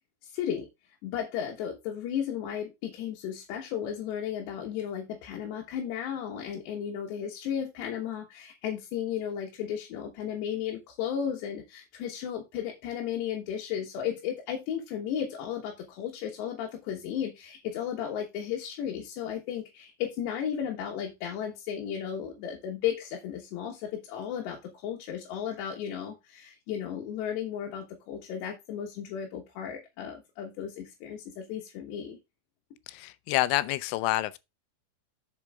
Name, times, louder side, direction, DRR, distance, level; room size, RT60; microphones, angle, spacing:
voice 1, 0.2-0.7 1.0-32.2, left 9 dB, 70° left, 3.3 m, -34 dB
voice 2, 32.9-34.4, left 17 dB, 90° left, 3.1 m, -28 dB
7.8 x 7.1 x 3.5 m
omnidirectional pair, 5.4 m